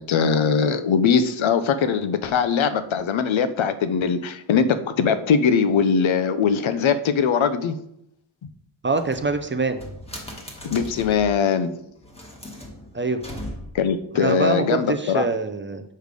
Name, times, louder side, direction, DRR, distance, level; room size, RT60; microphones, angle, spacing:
voice 1, 0.0-7.7 10.6-11.7 13.7-15.2, left 6 dB, 85° left, 11 dB, 0.6 m, -21 dB
voice 2, 8.8-9.8 12.9-13.2 14.1-15.8, right 3 dB, 30° right, 8 dB, 0.4 m, -24 dB
sound 1, 8.9-11.3 12.0-13.9, equal, 15° left, 1.3 m, -38 dB
6.5 x 3.3 x 5.1 m, 0.75 s
wide cardioid pair, 115°, 46 cm